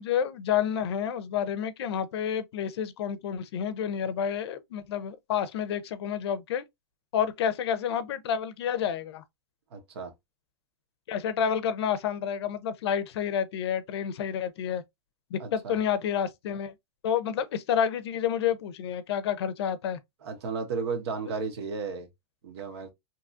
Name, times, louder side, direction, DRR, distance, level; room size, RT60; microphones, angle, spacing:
voice 1, 0.0-6.6 7.1-9.2 11.1-14.8 15.3-16.7 17.0-20.0, left 8 dB, 70° left, 0.5 m, -29 dB
voice 2, 9.7-10.1 15.4-15.8 20.2-22.1 22.4-22.9, right 5 dB, 70° right, 0.9 m, -34 dB
2.8 x 2.4 x 2.5 m
supercardioid pair, 160°, 14 cm